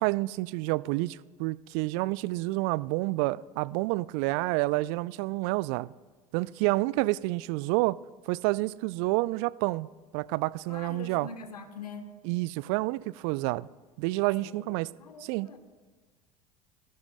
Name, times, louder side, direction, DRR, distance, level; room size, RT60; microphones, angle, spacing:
voice 1, 0.0-5.9 6.3-8.0 8.3-9.9 10.1-11.3 12.2-13.7 14.0-14.9 15.2-15.5, right 21 dB, 50° right, 0.4 m, -29 dB
voice 2, 10.7-12.1 14.4-15.6, left 4 dB, 80° left, 1.2 m, -44 dB
23.0 x 14.0 x 2.2 m
figure-of-eight pair, 75°, 20 cm